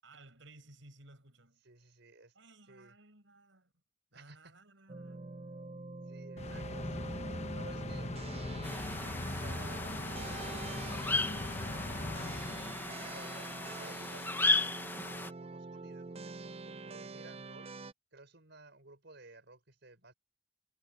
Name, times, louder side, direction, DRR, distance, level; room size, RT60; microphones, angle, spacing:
voice 1, 0.0-1.6 2.3-3.7 4.1-5.4, right 2 dB, 80° right, 5.8 m, -58 dB
voice 2, 1.6-2.3 2.7-3.0 4.1-4.6 6.1-8.4 8.7-17.8 18.1-20.1, right 2 dB, 65° right, 5.5 m, -56 dB
sound 1, 4.9-17.9, right 3 dB, 30° right, 0.5 m, -46 dB
sound 2, 6.4-13.2, left 2 dB, 35° left, 1.2 m, -40 dB
sound 3, 8.6-15.3, left 3 dB, 10° left, 1.0 m, -36 dB
head